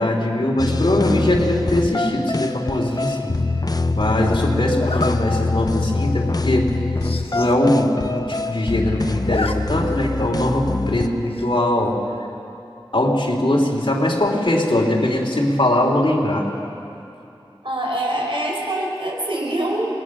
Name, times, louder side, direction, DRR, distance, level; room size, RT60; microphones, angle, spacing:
voice 1, 0.0-3.3 3.9-6.7 7.3-12.0 12.9-16.5, left 1 dB, 60° left, -1 dB, 3.3 m, -21 dB
sound 1, 0.6-11.1, left 3 dB, 45° left, 0.9 m, -24 dB
Zipper (clothing), 2.8-3.2 4.8-5.2 5.7-5.9 6.2-6.3 6.5-6.6 6.9-7.5 7.9-8.0 8.2-8.7 9.0-9.5 9.9-10.0 11.3-11.7, left 3 dB, 85° left, 1.0 m, -30 dB
voice 2, 17.6-19.9, right 1 dB, 65° right, -2 dB, 5.2 m, -24 dB
27.0 x 21.0 x 6.2 m, 2.7 s
wide cardioid pair, 55°, 10 cm